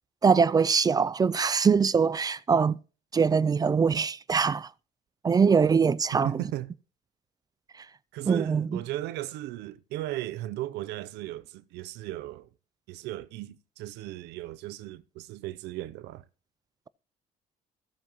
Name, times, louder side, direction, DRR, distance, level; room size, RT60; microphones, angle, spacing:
voice 1, 0.2-2.8 3.1-4.7 5.2-6.4 7.8-7.9 8.3-8.8, right 5 dB, 25° right, 0.4 m, -23 dB
voice 2, 6.2-6.7 8.1-12.5 12.9-16.2, right 15 dB, 85° right, 0.6 m, -36 dB
15.5 x 7.2 x 3.0 m
cardioid pair, 110°, 17 cm